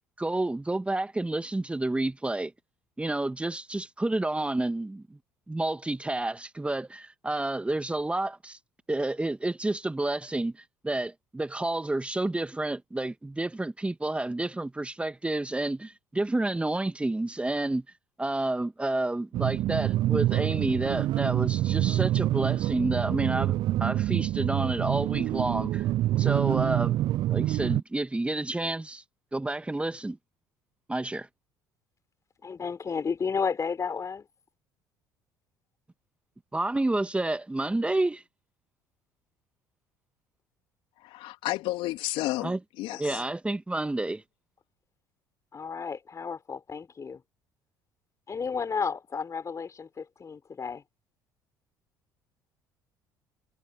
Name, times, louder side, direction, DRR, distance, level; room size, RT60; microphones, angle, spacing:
voice 1, 0.2-2.5 3.0-5.2 5.5-8.6 8.9-17.8 18.2-25.9 26.2-27.0 27.3-29.0 29.3-30.2 30.9-31.3 36.5-38.2 42.4-42.6 43.0-44.2, right 2 dB, 10° right, 1.7 m, -30 dB
sound 1, 19.3-27.8, right 14 dB, 50° right, 0.4 m, -26 dB
voice 2, 32.4-34.3 43.1-43.2 45.5-47.2 48.3-50.8, left 5 dB, 35° left, 4.7 m, -32 dB
voice 3, 41.0-43.2, left 17 dB, 65° left, 2.6 m, -32 dB
hypercardioid pair, 55°, 10 cm